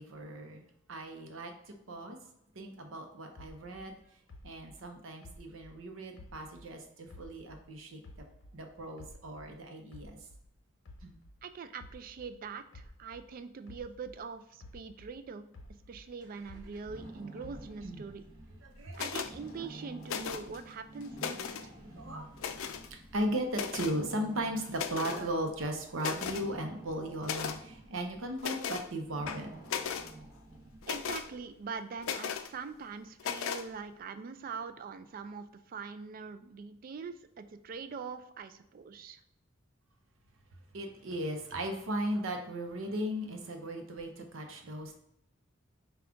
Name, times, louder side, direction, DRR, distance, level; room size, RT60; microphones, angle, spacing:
voice 1, 0.0-2.2 2.6-4.0 4.4-8.0 8.5-10.2 11.0-11.2 17.8-18.0 18.6-19.1 21.9-22.3 23.1-29.5 40.7-45.0, right 1 dB, 75° right, 4 dB, 0.7 m, -37 dB
sound 1, 3.4-6.8 7.1-9.6 9.9-14.3 14.6-17.1 17.4-18.1, left 1 dB, 65° left, 0.7 m, -53 dB
voice 2, 11.4-15.5 15.9-18.2 19.0-21.7 30.9-39.2, right 5 dB, 45° right, 11 dB, 0.3 m, -43 dB
sound 2, 16.2-31.6, right 1 dB, 20° right, 0.8 m, -51 dB
sound 3, 18.9-19.3 20.0-20.6 21.0-21.7 22.4-22.9 23.5-24.0 24.7-25.2 25.6-25.7 26.0-26.5 27.2-27.6 28.4-28.9 29.3-30.1 30.8-31.3 32.0-32.5 33.2-33.6, left 7 dB, 85° left, 0.4 m, -36 dB
5.1 x 2.3 x 3.5 m, 0.77 s
head